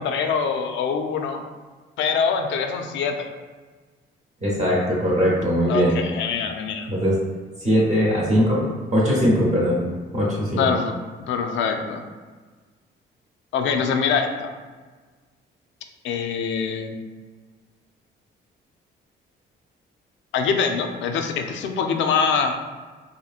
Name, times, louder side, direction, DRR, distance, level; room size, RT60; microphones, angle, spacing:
voice 1, 0.0-1.4 2.0-3.3 5.7-6.9 10.5-10.9 11.3-12.0 13.5-14.5 16.0-16.9 20.3-22.5, left 6 dB, 70° left, 5 dB, 0.4 m, -24 dB
voice 2, 4.4-5.9 6.9-7.1 7.6-8.6 8.9-9.8 10.1-10.6, equal, 35° right, -6 dB, 0.9 m, -20 dB
2.9 x 2.6 x 2.4 m, 1.4 s
cardioid pair, 90°, 20 cm